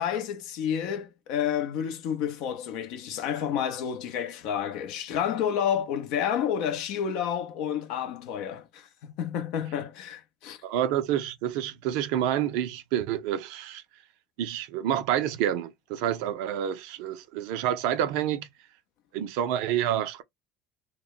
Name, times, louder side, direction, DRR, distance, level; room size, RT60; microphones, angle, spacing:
voice 1, 0.0-10.6, left 9 dB, 60° left, 0.6 m, -30 dB
voice 2, 10.6-13.8 14.4-18.5 19.1-20.2, right 10 dB, 65° right, 0.5 m, -28 dB
2.2 x 2.1 x 3.7 m
hypercardioid pair, 65°, 0 cm